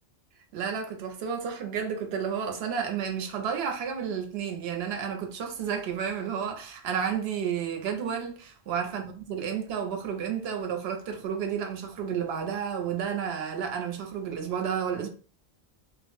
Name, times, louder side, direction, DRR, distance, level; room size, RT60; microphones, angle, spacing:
voice 1, 0.5-15.1, right 7 dB, 70° right, 0.8 m, -31 dB
2.1 x 2.1 x 2.9 m
omnidirectional pair, 1.1 m